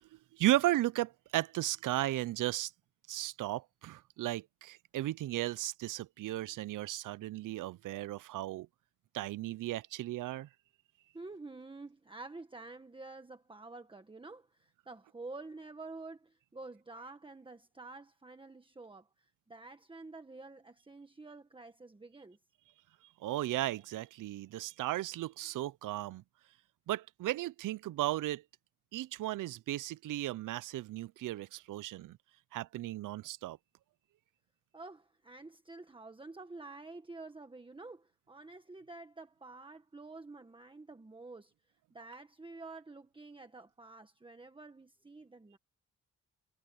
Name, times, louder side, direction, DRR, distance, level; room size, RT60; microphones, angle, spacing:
voice 1, 0.3-2.7 3.1-8.7 9.1-10.5 23.2-26.2 26.9-28.4 28.9-32.2 32.5-33.6, right 15 dB, 80° right, 0.5 m, -35 dB
voice 2, 11.1-22.4 34.7-41.5 41.9-45.6, right 3 dB, 15° right, 1.4 m, -49 dB
wide cardioid pair, 125°, 31 cm